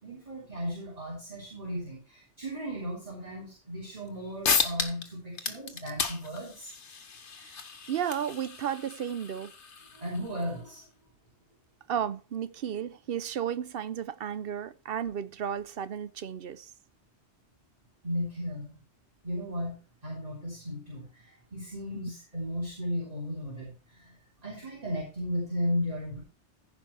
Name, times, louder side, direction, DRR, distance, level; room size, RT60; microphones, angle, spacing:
voice 1, 0.0-6.7 9.9-10.9 18.0-18.7 19.2-19.8 20.0-24.1 24.4-26.2, equal, 35° right, 3.8 m, -35 dB
sound 1, 4.1-4.2 4.4-5.1 5.3-10.5, left 5 dB, 85° left, 1.5 m, -33 dB
voice 2, 7.9-9.5 11.9-16.7, right 9 dB, 60° right, 0.8 m, -33 dB
15.0 x 5.5 x 4.3 m
omnidirectional pair, 1.1 m